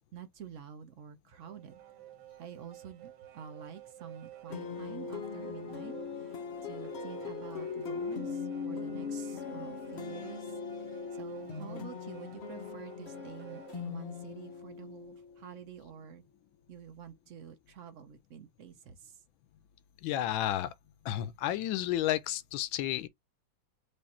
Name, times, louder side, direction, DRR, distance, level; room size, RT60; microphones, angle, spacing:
voice 1, 0.1-1.8 2.4-6.4 6.6-16.2 16.7-19.2, right 8 dB, 60° right, 0.8 m, -48 dB
sound 1, 1.3-13.9, right 13 dB, 85° right, 1.6 m, -51 dB
sound 2, 4.5-15.7, left 6 dB, 50° left, 0.8 m, -40 dB
voice 2, 20.0-20.7 21.0-23.1, left 12 dB, 85° left, 1.4 m, -31 dB
5.0 x 2.6 x 4.1 m
omnidirectional pair, 2.1 m